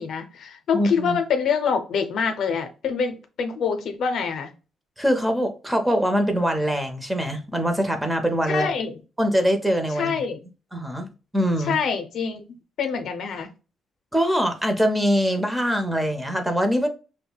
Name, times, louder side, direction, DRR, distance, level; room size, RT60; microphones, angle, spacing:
voice 1, 0.0-4.5 8.5-8.9 9.9-10.4 11.6-12.4 12.8-13.5, left 6 dB, 70° left, 0.6 m, -25 dB
voice 2, 0.7-1.2 5.0-8.7 9.2-10.1 10.7-11.8 14.1-16.9, equal, 5° right, 0.7 m, -23 dB
5.2 x 2.2 x 2.3 m
cardioid pair, 90°, 0 cm